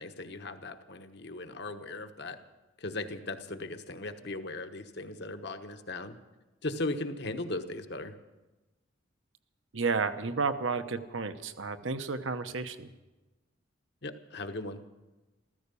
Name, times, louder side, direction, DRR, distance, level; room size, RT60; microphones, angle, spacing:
voice 1, 0.0-2.4 2.8-6.1 6.6-8.1 14.0-14.8, left 2 dB, 55° left, 7 dB, 1.2 m, -38 dB
voice 2, 9.7-12.9, right 4 dB, 70° right, 9 dB, 1.0 m, -32 dB
14.5 x 14.5 x 6.9 m, 1.1 s
head